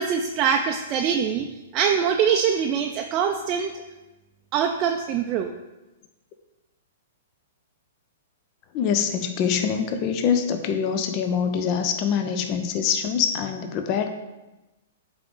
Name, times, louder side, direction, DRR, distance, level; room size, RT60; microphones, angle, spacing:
voice 1, 0.0-1.5 1.7-3.7 4.5-5.5, right 7 dB, 35° right, 3 dB, 0.4 m, -23 dB
voice 2, 8.7-14.1, left 7 dB, 40° left, 7 dB, 0.6 m, -24 dB
8.2 x 3.6 x 3.8 m, 1.1 s
hypercardioid pair, 120°, 0 cm